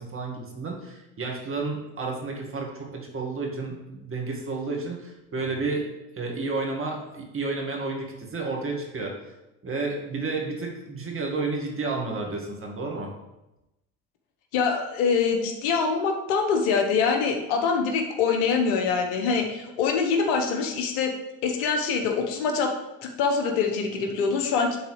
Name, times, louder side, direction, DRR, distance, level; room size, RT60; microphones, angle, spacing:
voice 1, 0.0-5.9 6.1-9.1 9.6-13.1, right 3 dB, 30° right, -1 dB, 1.9 m, -31 dB
voice 2, 14.5-21.1 21.4-22.7 23.0-24.8, left 5 dB, 70° left, 3 dB, 1.2 m, -24 dB
11.5 x 3.9 x 3.3 m, 0.96 s
hypercardioid pair, 75°, 42 cm